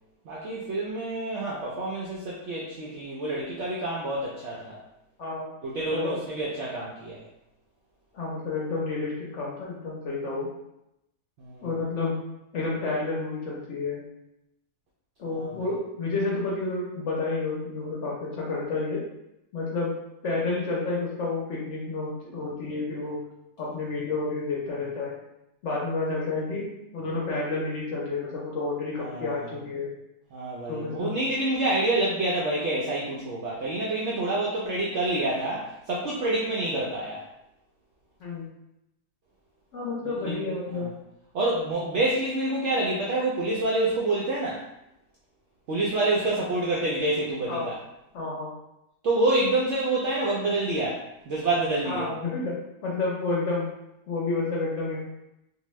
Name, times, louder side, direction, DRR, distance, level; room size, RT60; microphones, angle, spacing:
voice 1, 0.3-4.8 5.6-7.2 11.4-11.7 15.3-15.6 29.0-29.5 30.3-37.2 40.1-40.9 41.3-44.6 45.7-47.8 49.0-52.1, right 2 dB, 70° right, -5 dB, 0.6 m, -27 dB
voice 2, 8.1-10.5 11.6-12.2 12.5-14.0 15.2-19.0 19.5-19.9 20.2-23.2 23.6-25.1 25.6-26.7 26.9-29.9 30.7-31.1 38.2-38.5 39.7-40.9 47.5-47.7 48.1-48.5 51.8-52.5 52.8-53.7 54.1-55.0, left 3 dB, 60° left, -5 dB, 0.8 m, -30 dB
2.7 x 2.2 x 3.0 m, 0.87 s
omnidirectional pair, 1.7 m